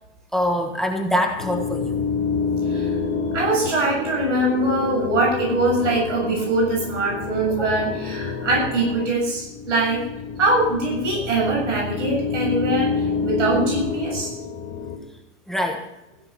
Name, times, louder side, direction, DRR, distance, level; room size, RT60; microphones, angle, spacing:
voice 1, 0.3-2.0 7.5-7.7 15.5-15.8, equal, ahead, 3 dB, 1.3 m, -24 dB
sound 1, 1.4-15.0, left 5 dB, 20° left, 1.8 m, -28 dB
voice 2, 3.3-10.1 10.4-12.9 13.2-14.3, right 2 dB, 85° right, -1 dB, 7.3 m, -22 dB
16.0 x 11.0 x 6.0 m, 0.90 s
supercardioid pair, 150°, 36 cm